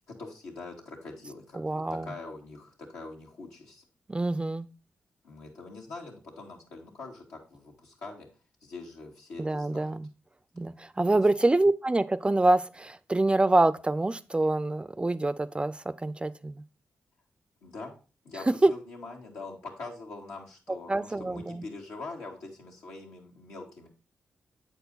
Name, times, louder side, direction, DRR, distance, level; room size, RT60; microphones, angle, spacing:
voice 1, 0.1-3.8 5.2-8.3 8.6-10.0 11.1-11.2 17.6-17.9 18.2-23.9, left 3 dB, 85° left, -1 dB, 1.8 m, -43 dB
voice 2, 1.5-2.1 4.1-4.7 9.4-10.1 10.6-16.6 18.6-18.7 20.9-21.6, right 2 dB, 20° right, 16 dB, 0.4 m, -26 dB
7.8 x 4.6 x 3.9 m, 0.33 s
supercardioid pair, 45°, 5 cm